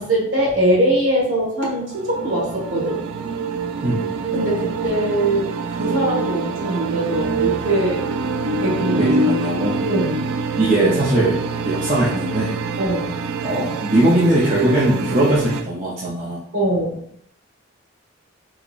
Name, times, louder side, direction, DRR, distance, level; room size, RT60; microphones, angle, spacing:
voice 1, 0.0-3.0 4.3-8.0 8.5-9.1 9.8-10.3 12.8-13.2 16.5-17.0, right 1 dB, 60° right, -5 dB, 1.4 m, -22 dB
sound 1, 1.9-15.6, right 3 dB, 85° right, 0.3 m, -25 dB
voice 2, 3.8-4.1 9.0-9.8 10.6-11.4 11.6-12.6 13.4-16.4, right 1 dB, 30° right, -8 dB, 0.6 m, -19 dB
3.8 x 2.9 x 2.4 m, 0.67 s
head